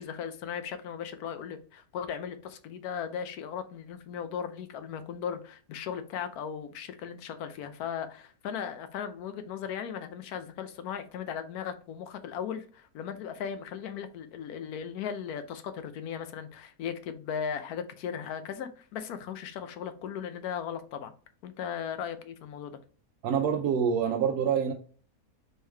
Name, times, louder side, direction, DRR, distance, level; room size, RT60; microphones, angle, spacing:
voice 1, 0.0-21.1 21.4-22.8, left 8 dB, 85° left, 1.1 m, -37 dB
voice 2, 23.2-24.7, right 7 dB, 90° right, 1.1 m, -26 dB
4.5 x 3.2 x 3.3 m
omnidirectional pair, 1.6 m